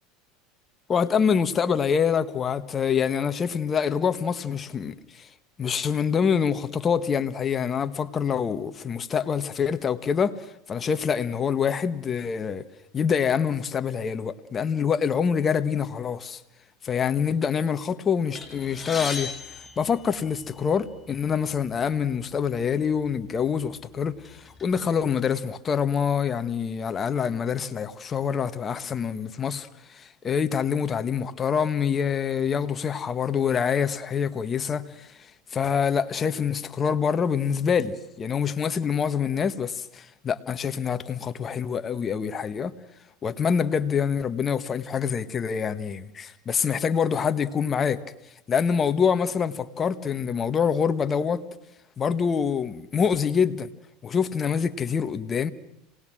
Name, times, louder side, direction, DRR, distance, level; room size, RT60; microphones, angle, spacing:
voice 1, 0.9-5.3 5.6-10.4 10.7-12.7 12.9-16.4 16.8-24.2 24.6-29.7 29.9-35.1 35.5-42.7 43.2-48.0 48.5-51.4 52.0-53.7 54.0-55.5, left 7 dB, 30° left, 1.4 m, -25 dB
sound 1, 18.3-20.7 21.5-21.6 22.0-22.1 23.0-23.2 23.6-24.8, left 4 dB, 10° left, 6.6 m, -37 dB
27.5 x 19.5 x 6.2 m
supercardioid pair, 110°, 0 cm